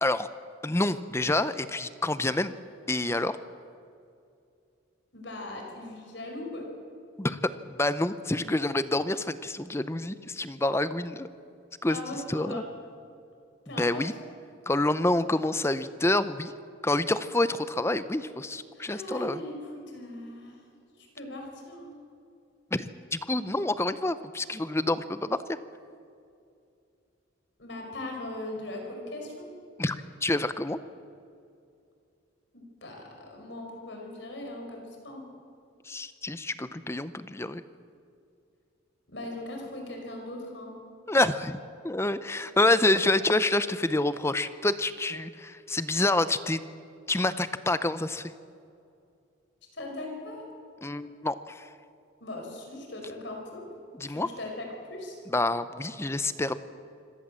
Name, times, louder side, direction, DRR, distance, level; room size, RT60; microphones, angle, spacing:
voice 1, 0.6-2.5 2.9-3.4 7.2-7.4 7.7-11.3 11.8-12.0 12.3-12.6 13.8-14.1 14.7-16.5 16.8-19.4 22.7-22.9 23.1-25.4 29.8-30.8 35.9-37.6 41.1-41.6 41.8-46.6 47.1-48.3 50.8-51.7 54.0-54.3 55.3-56.6, left 2 dB, 15° left, 13 dB, 0.6 m, -27 dB
voice 2, 5.1-6.6 11.9-12.6 13.6-14.0 18.7-20.6 21.0-22.0 27.6-29.5 32.5-35.3 39.1-40.8 49.7-50.4 52.2-53.6 54.0-55.2, left 1 dB, 60° left, 1 dB, 5.0 m, -39 dB
26.0 x 17.0 x 7.5 m, 2.5 s
head